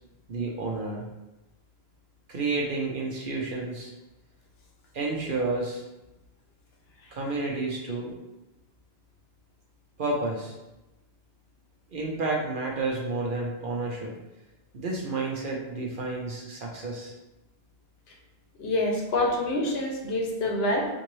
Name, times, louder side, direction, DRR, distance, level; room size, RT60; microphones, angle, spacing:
voice 1, 0.3-1.0 2.3-3.9 4.9-5.8 7.1-8.1 10.0-10.5 11.9-14.1 14.7-17.1, right 3 dB, 60° right, -1 dB, 0.8 m, -30 dB
voice 2, 18.6-20.9, left 1 dB, 70° left, 0 dB, 0.9 m, -26 dB
3.8 x 2.6 x 3.1 m, 1.0 s
omnidirectional pair, 1.1 m